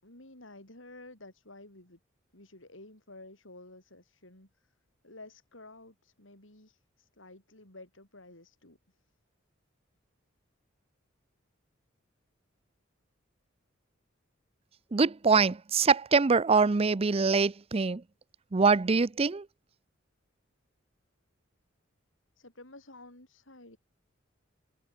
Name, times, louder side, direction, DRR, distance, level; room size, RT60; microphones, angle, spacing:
voice 1, 0.0-2.0 2.3-4.7 5.0-9.1 22.4-23.8, left 2 dB, 75° left, 7.8 m, -52 dB
voice 2, 14.9-18.0 18.5-19.5, right 4 dB, 30° right, 0.5 m, -24 dB
head